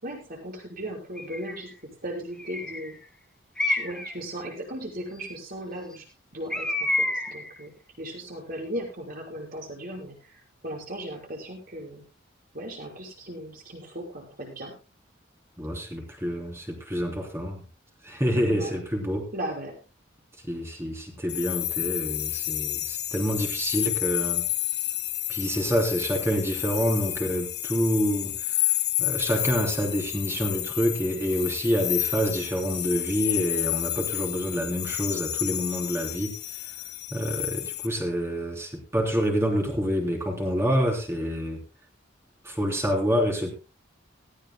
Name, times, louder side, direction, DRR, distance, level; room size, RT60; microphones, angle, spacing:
voice 1, 0.0-3.0 3.6-6.1 6.3-7.7 8.0-12.0 12.5-14.7 18.5-18.7 19.3-19.7, right 1 dB, 50° right, 0 dB, 5.6 m, -37 dB
Bird, 1.2-1.6 2.4-2.9 3.6-4.2 6.5-7.5, left 2 dB, 5° left, 1.7 m, -28 dB
voice 2, 15.6-17.6 18.0-19.3 20.5-24.5 25.3-28.7 29.0-36.3 37.1-41.6 42.4-43.5, equal, 15° right, 1 dB, 3.5 m, -27 dB
sound 1, 21.3-37.9, left 15 dB, 60° left, 1.3 m, -30 dB
18.5 x 16.0 x 2.2 m, 0.32 s
head